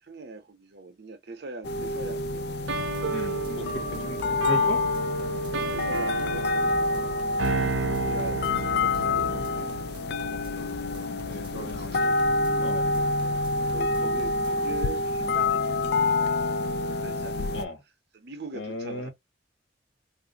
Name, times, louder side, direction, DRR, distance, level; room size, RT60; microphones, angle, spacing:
voice 1, 0.0-2.4 5.7-6.9 7.8-9.7 11.1-12.2 12.9-13.1 13.6-16.4 16.8-17.6 18.1-19.1, right 3 dB, 55° right, 0.8 m, -42 dB
sound 1, 1.6-17.6, left 3 dB, 55° left, 0.3 m, -27 dB
sound 2, 2.7-9.6, right 4 dB, 90° right, 0.6 m, -33 dB
sound 3, 2.9-14.8, equal, 25° right, 0.8 m, -45 dB
voice 2, 3.1-4.8 11.3-12.0 12.3-12.9 17.5-17.8 18.5-19.1, equal, 75° left, 1.3 m, -36 dB
2.5 x 2.2 x 3.9 m
head